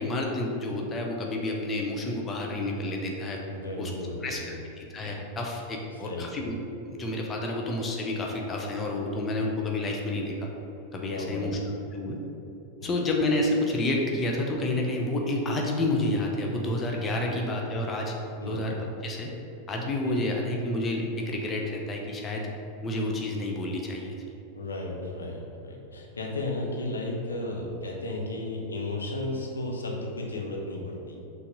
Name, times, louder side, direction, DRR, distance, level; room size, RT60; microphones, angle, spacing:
voice 1, 0.0-3.4 3.8-3.9 4.2-4.4 4.8-10.5 10.9-11.6 11.9-12.2 12.8-18.1 18.5-18.7 19.0-19.3 19.7-22.4 22.8-24.1, left 1 dB, 20° left, 0 dB, 0.9 m, -29 dB
voice 2, 3.5-4.6 5.9-6.4 11.1-11.8 12.8-13.1 17.2-17.4 18.4-18.6 20.1-20.2 24.5-31.2, left 2 dB, 75° left, -1 dB, 0.9 m, -34 dB
5.6 x 4.0 x 5.2 m, 2.9 s
figure-of-eight pair, 90°, 0 cm